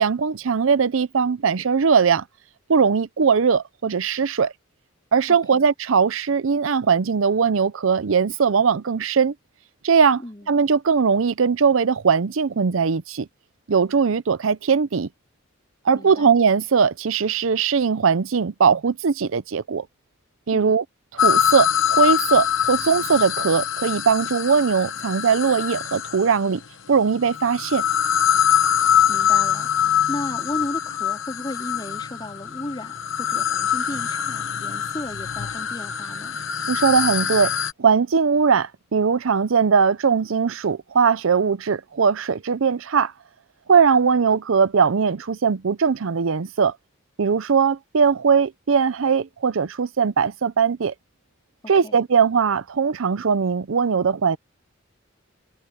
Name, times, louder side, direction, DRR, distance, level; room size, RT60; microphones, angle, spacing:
voice 1, 0.0-2.2 2.7-4.5 5.1-9.3 9.8-10.2 10.5-13.3 13.7-15.1 15.8-19.9 20.5-20.8 21.1-26.6 26.9-27.8 36.7-37.5 37.8-43.1 43.7-46.7 47.2-50.9 51.7-54.4, right 6 dB, 70° right, 0.6 m, -20 dB
voice 2, 5.3-5.6 10.2-10.5 15.9-16.3 20.5-20.7 28.8-36.4 51.8-52.0, left 1 dB, 20° left, 3.6 m, -35 dB
sound 1, 21.2-26.4 27.2-37.7, left 9 dB, 65° left, 1.2 m, -23 dB
head